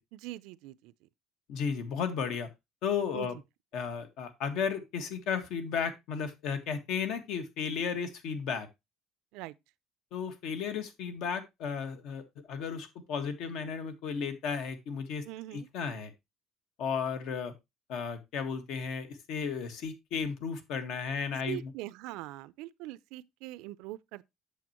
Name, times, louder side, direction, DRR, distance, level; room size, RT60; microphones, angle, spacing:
voice 1, 0.1-0.9 3.1-3.3 9.3-9.5 15.2-15.7 21.5-24.3, right 17 dB, 90° right, 0.5 m, -42 dB
voice 2, 1.5-2.5 2.8-3.4 3.7-8.7 10.1-12.2 12.5-15.2 15.5-16.1 16.8-17.5 17.9-21.7, left 6 dB, 70° left, 1.6 m, -34 dB
8.5 x 6.9 x 2.9 m
cardioid pair, 155°, 0 cm